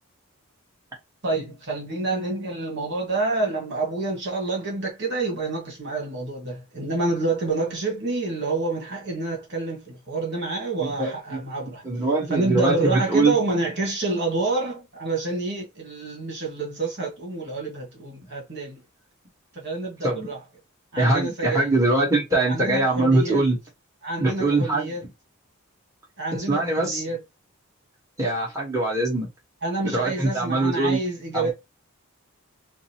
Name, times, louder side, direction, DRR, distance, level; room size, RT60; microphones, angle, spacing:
voice 1, 1.2-11.8 12.3-18.8 19.5-20.4 20.9-21.7 22.4-23.4 24.0-25.0 26.2-27.2 29.6-31.5, right 3 dB, 50° right, 1.5 m, -28 dB
voice 2, 10.8-11.4 11.8-13.3 20.0-20.3 21.0-23.6 24.2-24.9 26.5-27.0 28.2-29.3 29.8-31.0 31.3-31.5, right 2 dB, 15° right, 1.4 m, -22 dB
5.1 x 2.0 x 2.9 m
head